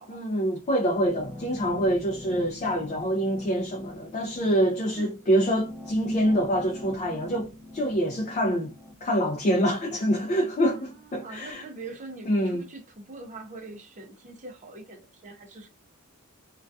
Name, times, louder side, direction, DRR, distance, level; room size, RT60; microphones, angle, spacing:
voice 1, 0.1-8.7 9.0-11.6 12.3-12.6, equal, 30° left, 0.4 m, -26 dB
sound 1, 0.9-9.9, left 1 dB, ahead, 0.8 m, -44 dB
voice 2, 10.7-15.7, right 3 dB, 35° right, 0.5 m, -43 dB
2.2 x 2.2 x 2.6 m
head